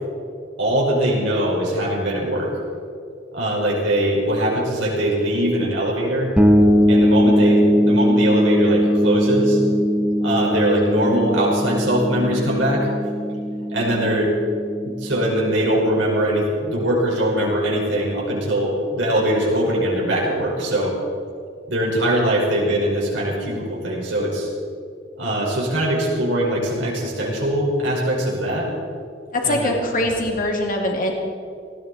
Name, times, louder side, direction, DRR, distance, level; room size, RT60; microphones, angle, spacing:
voice 1, 0.6-2.5 3.3-6.3 6.9-9.6 10.2-12.9 13.7-14.3 14.8-21.0 21.7-24.5 25.2-28.7 29.4-29.7, right 1 dB, 70° right, -3 dB, 5.3 m, -21 dB
sound 1, 6.4-16.0, equal, 5° right, 1.6 m, -20 dB
voice 2, 29.3-31.1, left 1 dB, 45° left, 1 dB, 2.6 m, -22 dB
19.0 x 17.0 x 4.3 m, 2.4 s
head